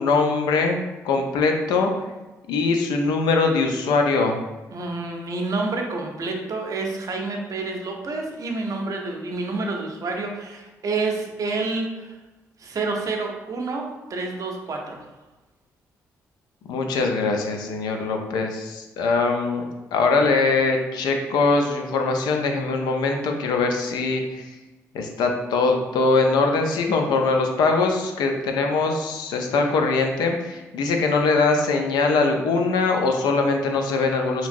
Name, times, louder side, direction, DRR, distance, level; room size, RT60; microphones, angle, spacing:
voice 1, 0.0-1.9 2.5-4.4 16.7-24.5 24.9-34.5, left 3 dB, 70° left, 3 dB, 0.4 m, -22 dB
voice 2, 4.7-12.2 12.6-15.1, right 3 dB, 50° right, 1 dB, 0.6 m, -28 dB
2.8 x 2.5 x 2.5 m, 1.1 s
hypercardioid pair, 50°, 7 cm